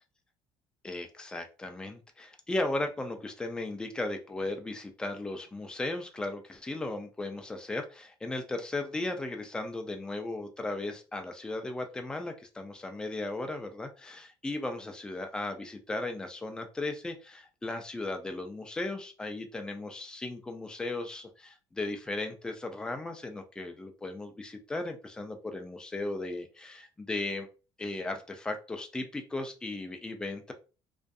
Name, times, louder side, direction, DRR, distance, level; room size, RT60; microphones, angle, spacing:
voice 1, 0.8-27.5 27.8-30.5, left 2 dB, 5° left, 5 dB, 0.3 m, -36 dB
2.5 x 2.3 x 2.3 m, 0.33 s
cardioid pair, 165°, 11 cm